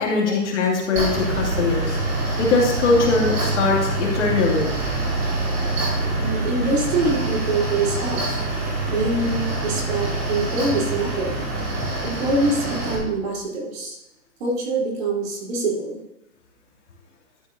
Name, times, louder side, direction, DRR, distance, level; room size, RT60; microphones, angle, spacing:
voice 1, 0.0-2.0 2.4-4.7, left 3 dB, 50° left, -1 dB, 2.6 m, -21 dB
Mechanical fan, 1.0-13.0, right 2 dB, 25° right, 3.0 m, -25 dB
voice 2, 6.2-8.4 8.9-11.4 12.0-14.0 14.4-16.0, right 2 dB, 40° right, -3 dB, 3.3 m, -24 dB
12.5 x 8.0 x 2.7 m, 0.90 s
hypercardioid pair, 155°, 46 cm